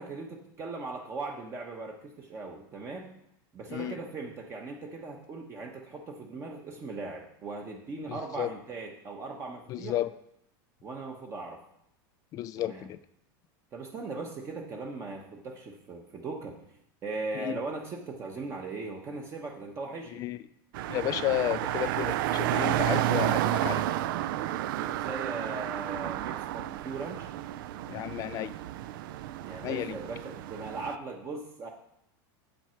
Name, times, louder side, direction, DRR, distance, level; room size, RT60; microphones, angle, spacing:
voice 1, 0.0-3.1 3.5-10.0 10.8-11.6 12.6-12.9 13.7-16.6 17.0-20.2 24.7-27.3 29.4-31.7, right 3 dB, 25° right, 1 dB, 1.0 m, -39 dB
voice 2, 8.1-8.5 9.7-10.1 12.3-13.0 17.3-17.5 20.1-20.4 20.9-23.9 27.9-28.5 29.6-30.0, left 13 dB, 30° left, 16 dB, 0.3 m, -32 dB
sound 1, 20.7-31.0, right 13 dB, 70° right, 0.4 m, -31 dB
8.3 x 7.9 x 4.5 m, 0.75 s
supercardioid pair, 155°, 12 cm